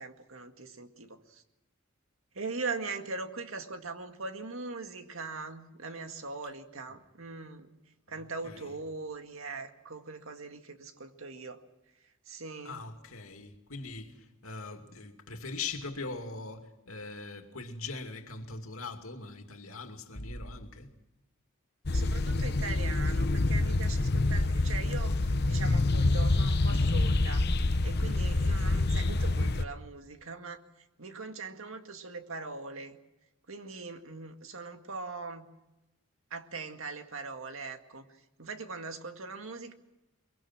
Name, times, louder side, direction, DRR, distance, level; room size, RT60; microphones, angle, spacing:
voice 1, 0.0-1.4 2.3-7.7 8.1-11.6 12.3-12.8 21.9-33.0 33.5-35.5 36.3-39.7, right 4 dB, 70° right, 2.0 m, -41 dB
voice 2, 8.4-8.8 12.6-20.9 24.3-24.4, left 3 dB, 80° left, 2.6 m, -41 dB
sound 1, 21.9-29.6, left 2 dB, 50° left, 0.8 m, -27 dB
23.5 x 23.0 x 6.1 m
head